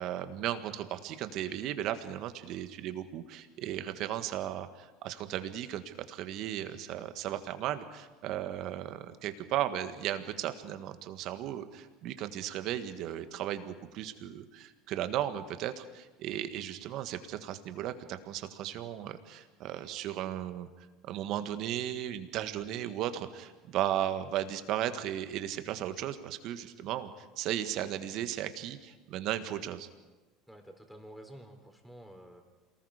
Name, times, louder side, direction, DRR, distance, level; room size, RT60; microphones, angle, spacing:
voice 1, 0.0-20.7 21.0-29.9, right 11 dB, 60° right, 9 dB, 1.7 m, -36 dB
voice 2, 30.5-32.4, right 1 dB, ahead, 4 dB, 4.3 m, -50 dB
27.5 x 19.0 x 5.1 m, 1.2 s
hypercardioid pair, 80°, 0 cm